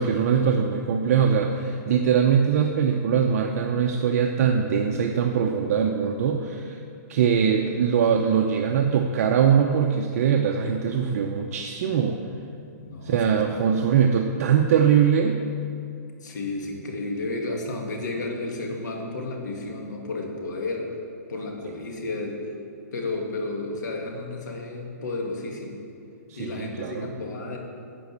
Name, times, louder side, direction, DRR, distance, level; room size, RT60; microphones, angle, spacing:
voice 1, 0.0-6.8 7.1-12.2 13.0-15.4 26.3-27.1, right 7 dB, 55° right, 2 dB, 0.7 m, -22 dB
voice 2, 12.8-13.4 13.7-14.0 16.2-20.9 21.3-22.4 22.9-25.8 26.4-27.6, left 2 dB, 90° left, 1 dB, 2.2 m, -32 dB
11.0 x 5.3 x 8.5 m, 2.5 s
hypercardioid pair, 160°, 9 cm